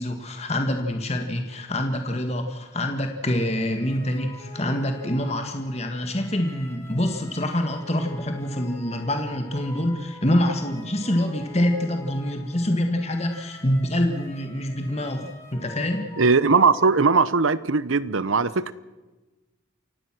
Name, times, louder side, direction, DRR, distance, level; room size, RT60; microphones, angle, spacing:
voice 1, 0.0-16.1, left 1 dB, 30° left, 5 dB, 1.9 m, -26 dB
sound 1, 3.5-17.2, left 1 dB, 15° left, 3.4 m, -45 dB
voice 2, 16.2-18.7, right 4 dB, 90° right, 17 dB, 0.9 m, -19 dB
28.5 x 16.5 x 6.2 m, 1.2 s
head